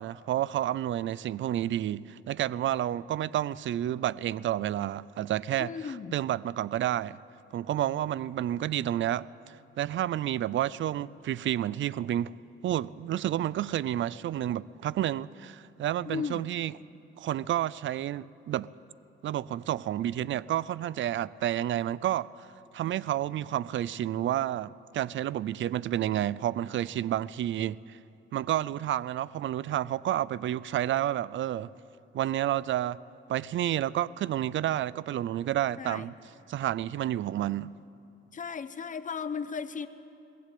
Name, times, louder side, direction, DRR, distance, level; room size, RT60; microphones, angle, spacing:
voice 1, 0.0-7.2 7.5-12.3 12.6-16.7 17.2-18.7 19.2-22.5 22.7-28.0 28.3-31.7 32.1-33.0 33.3-36.1 36.5-37.7, right 12 dB, 65° right, 0.5 m, -30 dB
voice 2, 5.6-6.1 16.0-16.5 35.8-36.1 38.3-39.9, left 6 dB, 40° left, 1.0 m, -35 dB
22.0 x 17.5 x 8.5 m
cardioid pair, 90°, 21 cm